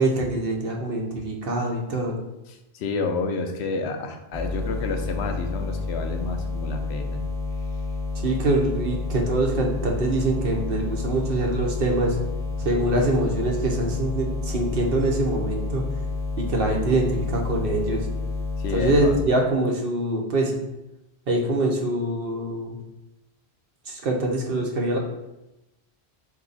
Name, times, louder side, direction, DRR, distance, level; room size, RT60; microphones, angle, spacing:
voice 1, 0.0-2.2 8.2-12.2 12.6-15.8 16.4-18.0 18.7-20.6 21.3-22.8 23.9-25.0, right 2 dB, 60° right, 1 dB, 0.9 m, -24 dB
voice 2, 2.5-7.2 18.6-19.2, left 4 dB, 80° left, 5 dB, 0.8 m, -29 dB
sound 1, 4.3-19.3, left 3 dB, 5° left, 0.3 m, -29 dB
4.1 x 2.8 x 3.9 m, 0.95 s
omnidirectional pair, 1.1 m